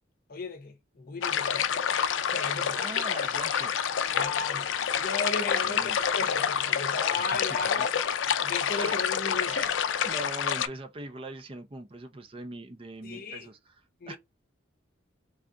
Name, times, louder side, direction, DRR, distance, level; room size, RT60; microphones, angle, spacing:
voice 1, 0.3-1.7 2.3-2.8 4.1-7.9 8.4-9.7 10.0-10.1 13.0-13.5 14.0-14.2, left 3 dB, 50° left, 0.7 m, -36 dB
sound 1, 1.2-10.7, left 8 dB, 80° left, 0.4 m, -28 dB
voice 2, 2.8-3.8 5.6-6.0 7.2-7.9 8.8-8.9 9.4-9.7 10.0-14.2, right 2 dB, 30° right, 0.5 m, -42 dB
3.4 x 2.4 x 3.7 m
head